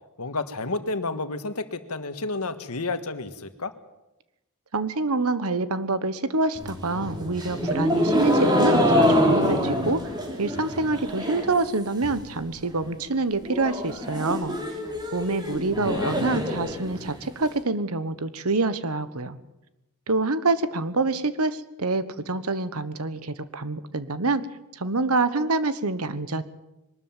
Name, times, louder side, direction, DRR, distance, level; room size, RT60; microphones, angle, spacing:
voice 1, 0.2-3.7 15.8-16.1, left 3 dB, 80° left, 10 dB, 1.6 m, -31 dB
voice 2, 4.7-10.0 10.4-14.6 15.1-19.4 20.1-24.4 24.7-26.4, right 3 dB, 75° right, 14 dB, 1.2 m, -26 dB
sound 1, 6.5-11.6 11.9-12.4 12.7-12.8 13.1-13.2 13.5-17.5, equal, 20° right, 3.0 m, -25 dB
22.5 x 13.0 x 9.2 m, 0.95 s
head